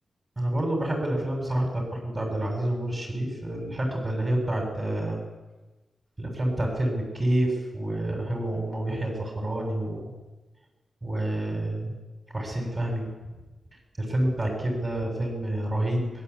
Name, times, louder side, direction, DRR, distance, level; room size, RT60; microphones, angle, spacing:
voice 1, 0.4-5.2 6.2-10.1 11.0-12.0 12.3-13.1 14.0-16.2, right 1 dB, 20° right, 0 dB, 7.4 m, -28 dB
25.0 x 22.5 x 8.5 m, 1.1 s
wide cardioid pair, 145°, 0 cm